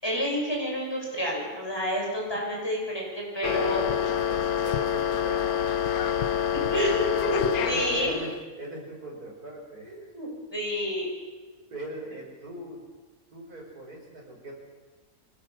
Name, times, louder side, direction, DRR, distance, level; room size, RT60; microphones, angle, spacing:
voice 1, 0.0-3.8 6.7-8.1 10.1-11.1, equal, 15° left, -2 dB, 6.7 m, -29 dB
sound 1, 3.4-8.4, left 9 dB, 75° left, 1.4 m, -27 dB
voice 2, 3.6-6.5 7.6-10.1 11.7-12.8 13.3-14.5, right 1 dB, 80° right, -1 dB, 5.9 m, -40 dB
24.0 x 17.5 x 7.4 m, 1.3 s
omnidirectional pair, 1.6 m